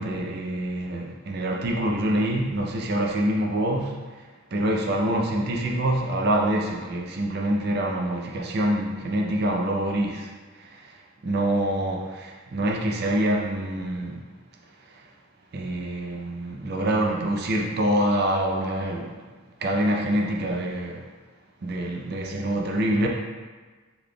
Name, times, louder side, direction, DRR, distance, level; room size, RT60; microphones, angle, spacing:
voice 1, 0.0-4.1 4.5-10.3 10.6-10.9 11.2-14.2 15.5-19.2 19.6-21.1 21.6-23.1, right 1 dB, 50° right, 0 dB, 0.5 m, -26 dB
4.0 x 3.2 x 2.2 m, 1.4 s
head